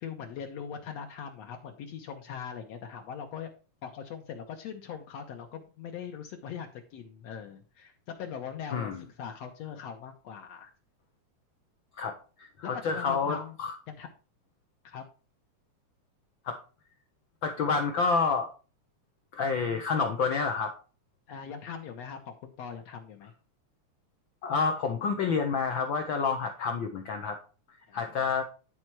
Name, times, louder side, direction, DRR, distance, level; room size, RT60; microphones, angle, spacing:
voice 1, 0.0-3.5 3.8-10.7 12.7-13.6 13.9-14.1 14.8-15.0 21.3-23.3 27.9-28.2, left 7 dB, 70° left, 3 dB, 1.9 m, -41 dB
voice 2, 8.7-9.0 12.0-13.7 16.4-16.6 17.4-18.5 19.3-20.7 24.4-27.4 27.9-28.4, left 5 dB, 90° left, 5 dB, 1.0 m, -29 dB
11.0 x 4.3 x 4.6 m, 0.36 s
omnidirectional pair, 3.4 m